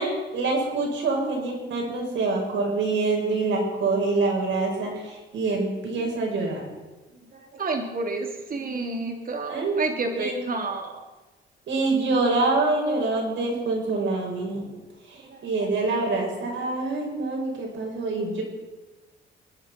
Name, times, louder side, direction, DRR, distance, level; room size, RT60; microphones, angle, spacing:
voice 1, 0.0-6.6 9.5-9.8 10.2-10.4 11.7-14.7 15.4-18.4, right 3 dB, 70° right, 0 dB, 6.3 m, -25 dB
voice 2, 7.3-11.1 15.2-15.9, right 3 dB, 45° right, 3 dB, 3.2 m, -31 dB
24.0 x 10.0 x 6.0 m, 1.1 s
cardioid pair, 90°, 20 cm